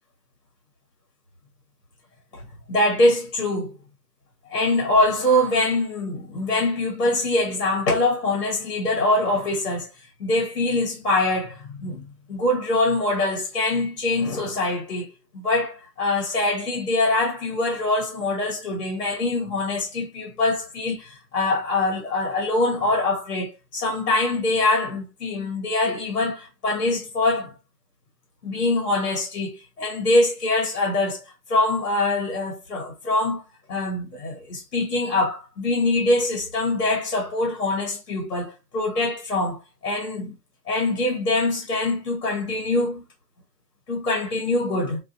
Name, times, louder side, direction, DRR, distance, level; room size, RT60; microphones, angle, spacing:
voice 1, 2.7-3.7 4.5-9.9 10.2-12.0 12.3-15.1 15.3-27.5 28.4-31.2 31.5-33.4 33.7-40.3 40.7-43.0 43.9-45.0, left 2 dB, 60° left, 1.1 m, -24 dB
2.4 x 2.3 x 2.5 m
hypercardioid pair, 165°, 50 cm